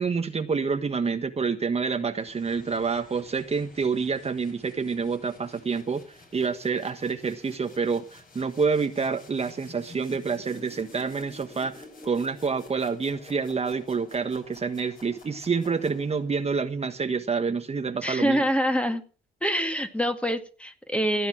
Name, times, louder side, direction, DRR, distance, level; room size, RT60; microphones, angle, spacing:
voice 1, 0.0-18.4, right 5 dB, 30° right, 7 dB, 1.3 m, -28 dB
sound 1, 2.1-16.4, left 2 dB, 45° left, 7.5 m, -50 dB
voice 2, 18.0-19.0 19.4-21.3, equal, 5° left, 7 dB, 2.2 m, -25 dB
16.0 x 10.0 x 6.1 m, 0.37 s
cardioid pair, 90°, 20 cm